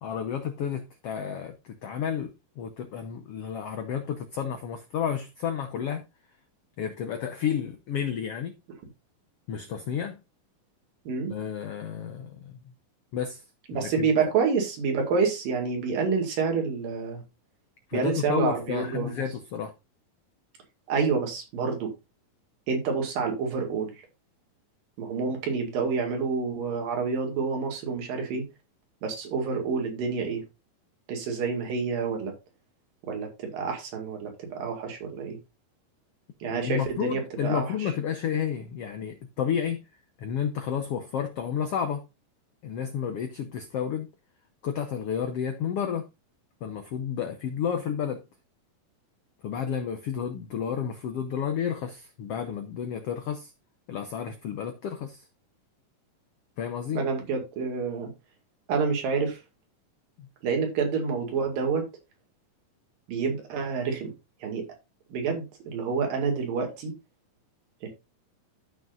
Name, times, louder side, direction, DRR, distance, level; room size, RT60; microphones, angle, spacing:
voice 1, 0.0-6.0 6.8-8.5 9.5-10.2 11.3-12.6 13.1-13.4 13.7-14.1 17.9-19.7 36.5-39.8 40.2-42.0 42.6-44.1 44.6-46.1 46.6-48.2 49.4-53.5 53.9-55.2 56.6-57.0 60.2-60.3, left 8 dB, 90° left, 1.3 m, -31 dB
voice 2, 13.7-17.2 17.9-19.2 20.9-21.9 22.7-23.9 25.0-28.5 29.0-30.4 31.1-32.3 33.1-35.4 36.4-37.9 57.0-58.1 58.7-59.4 60.4-61.9 63.1-64.1 64.4-64.6 65.1-66.9 67.8-67.9, right 5 dB, 80° right, 3.8 m, -28 dB
13.5 x 6.1 x 2.5 m
omnidirectional pair, 3.9 m